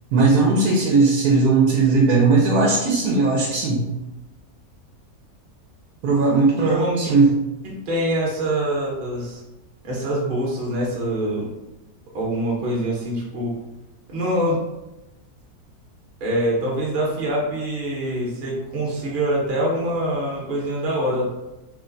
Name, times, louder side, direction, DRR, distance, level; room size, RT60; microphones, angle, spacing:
voice 1, 0.1-3.9 6.0-7.3, right 3 dB, 85° right, -2 dB, 1.1 m, -18 dB
voice 2, 6.6-7.2 7.6-9.4 9.8-11.5 12.1-13.6 14.1-14.7 16.2-21.2, right 1 dB, 40° right, -4 dB, 0.9 m, -24 dB
3.1 x 2.2 x 3.8 m, 0.98 s
omnidirectional pair, 1.6 m